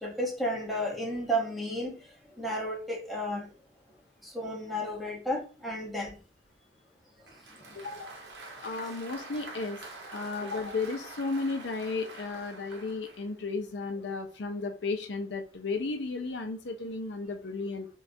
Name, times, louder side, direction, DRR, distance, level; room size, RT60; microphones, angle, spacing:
voice 1, 0.0-2.0 2.4-3.5 4.2-6.1 7.5-7.8, equal, ahead, 0.9 m, -32 dB
Applause, 7.3-13.3, right 2 dB, 75° right, 0.8 m, -46 dB
voice 2, 7.7-8.1 8.6-9.8 10.1-17.9, left 3 dB, 70° left, 0.5 m, -34 dB
4.3 x 2.3 x 2.7 m
head